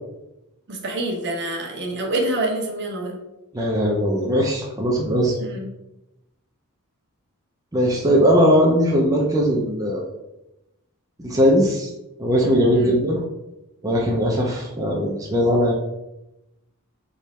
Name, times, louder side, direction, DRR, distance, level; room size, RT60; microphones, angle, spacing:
voice 1, 0.7-3.2 5.4-5.7 12.7-13.0, right 1 dB, 55° right, 0 dB, 0.9 m, -26 dB
voice 2, 3.5-5.4 7.7-10.1 11.2-11.9 12.2-13.2 13.8-15.7, equal, 15° right, -3 dB, 0.6 m, -19 dB
3.6 x 3.1 x 4.2 m, 0.93 s
head